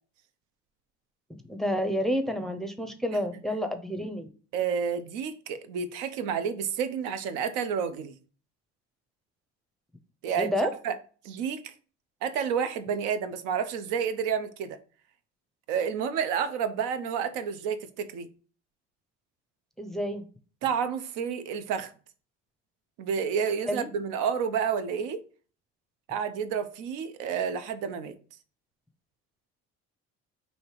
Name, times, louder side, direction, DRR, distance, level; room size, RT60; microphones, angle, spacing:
voice 1, 1.5-4.3 10.4-10.7 19.8-20.2 23.7-23.9, equal, ahead, 0.5 m, -29 dB
voice 2, 4.5-8.1 10.2-10.5 10.8-11.0 11.2-11.7 12.2-14.8 15.7-18.3 20.6-21.9 23.0-25.2 26.1-28.2, right 7 dB, 85° right, 0.5 m, -30 dB
3.2 x 2.6 x 4.4 m
supercardioid pair, 80°, 30 cm